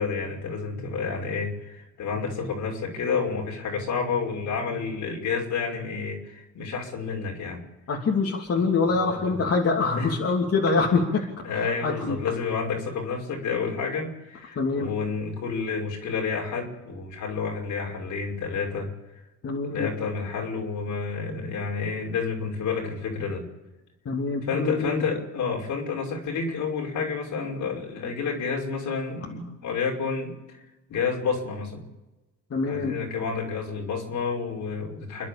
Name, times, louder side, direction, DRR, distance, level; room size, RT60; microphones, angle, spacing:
voice 1, 0.0-7.6 8.5-9.5 9.9-10.1 10.6-10.8 11.4-18.9 19.7-23.5 24.5-30.6 30.9-31.9 32.7-35.3, left 5 dB, 80° left, 1 dB, 5.7 m, -30 dB
voice 2, 7.9-11.0 11.5-12.2 14.5-14.9 19.4-19.9 24.0-24.9 32.5-32.9, left 4 dB, 50° left, 0 dB, 3.0 m, -25 dB
29.5 x 10.5 x 8.7 m, 1.1 s
cardioid pair, 90°, 30 cm